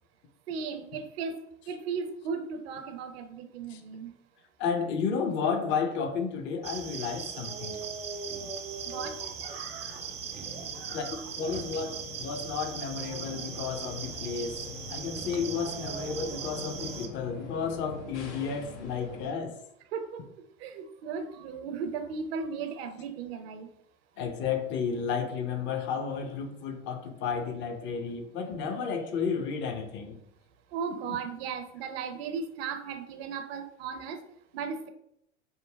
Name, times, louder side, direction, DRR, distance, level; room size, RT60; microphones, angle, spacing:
voice 1, 0.5-4.1 8.9-10.1 10.5-11.2 19.9-20.3 20.6-23.7 30.7-34.2 34.5-34.9, right 5 dB, 60° right, 0.6 m, -36 dB
voice 2, 4.6-7.9 10.9-14.6 14.9-19.6 24.2-30.2, left 6 dB, 35° left, 0.6 m, -32 dB
sound 1, 6.6-17.1, right 6 dB, 20° right, 0.4 m, -39 dB
sound 2, 7.7-19.3, left 4 dB, 70° left, 0.7 m, -46 dB
5.2 x 2.0 x 2.2 m
figure-of-eight pair, 80°, 35 cm